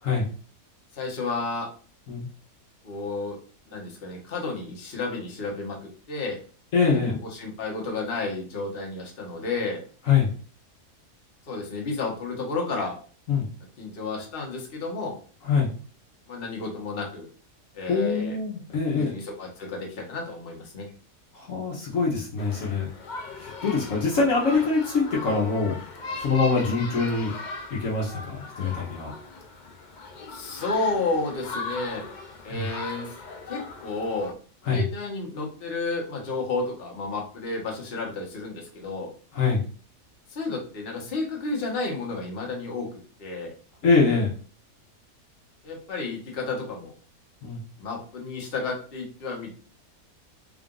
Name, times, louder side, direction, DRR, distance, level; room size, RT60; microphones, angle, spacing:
voice 1, 0.9-1.7 2.8-3.4 3.7-6.4 6.9-9.8 11.5-12.9 13.8-15.2 16.3-17.3 17.7-18.4 18.9-20.9 30.3-32.0 32.4-33.1 33.5-34.3 34.7-39.1 40.3-43.5 45.6-46.9 47.8-49.5, left 3 dB, 45° left, 0 dB, 1.2 m, -31 dB
voice 2, 6.7-7.2 10.1-10.3 13.3-13.5 15.5-15.7 17.9-19.1 21.3-22.9 23.4-25.7 26.1-27.3 27.7-29.1 32.5-32.6 34.7-34.8 39.3-39.6 43.8-44.3 47.4-47.7, left 4 dB, 65° left, -4 dB, 1.2 m, -24 dB
sound 1, 22.4-34.3, left 3 dB, 80° left, 0.4 m, -38 dB
3.7 x 2.5 x 3.7 m, 0.40 s
omnidirectional pair, 1.6 m